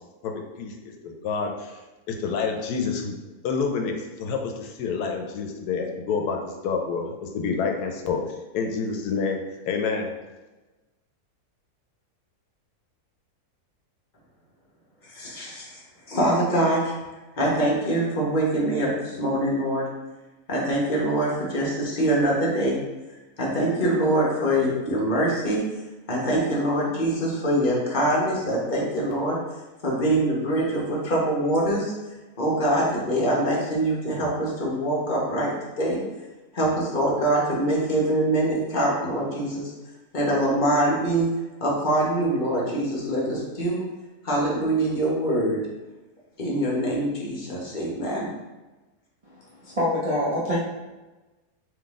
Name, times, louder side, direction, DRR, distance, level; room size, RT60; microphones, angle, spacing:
voice 1, 0.6-1.7 2.1-3.2 3.4-8.2 8.5-9.4 9.7-10.1, left 5 dB, 85° left, 3 dB, 1.1 m, -28 dB
voice 2, 15.0-15.8 16.1-16.9 17.4-19.9 20.5-22.8 23.4-25.6 26.1-29.4 29.8-31.9 32.4-36.0 36.5-39.7 40.1-41.3 41.6-43.8 44.2-45.6 46.4-48.3, right 1 dB, 35° left, -4 dB, 1.0 m, -24 dB
voice 3, 49.3-50.6, left 1 dB, 40° right, -9 dB, 0.5 m, -26 dB
3.8 x 3.0 x 3.6 m, 1.1 s
omnidirectional pair, 1.6 m